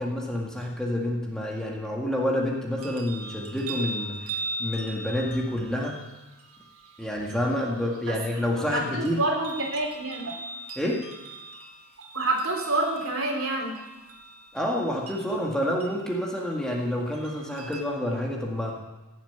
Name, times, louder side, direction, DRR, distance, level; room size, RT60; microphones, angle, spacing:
voice 1, 0.0-4.2 4.6-6.0 7.0-9.2 10.8-11.0 14.5-18.8, left 1 dB, 5° left, -2 dB, 2.0 m, -28 dB
sound 1, 2.8-17.8, right 2 dB, 80° right, 2.1 m, -41 dB
voice 2, 8.6-10.3 12.1-13.7, right 2 dB, 65° right, 1 dB, 3.6 m, -27 dB
16.5 x 7.4 x 9.0 m, 1.1 s
head